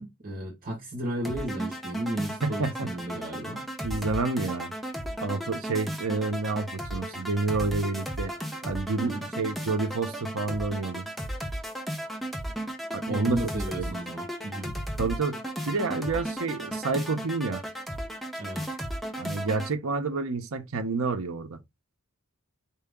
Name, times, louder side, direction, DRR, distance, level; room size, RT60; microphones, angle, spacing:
voice 1, 0.0-3.7 9.0-9.3 13.1-14.8 18.4-18.7, right 1 dB, 40° right, 1.3 m, -34 dB
sound 1, 1.2-19.7, equal, ahead, 0.7 m, -35 dB
voice 2, 2.4-2.9 3.8-4.7 5.2-8.3 8.6-11.1 12.9-13.4 13.8-13.9 15.0-15.4 15.7-17.6 19.2-21.6, right 3 dB, 65° right, 0.7 m, -29 dB
4.5 x 2.8 x 3.5 m
head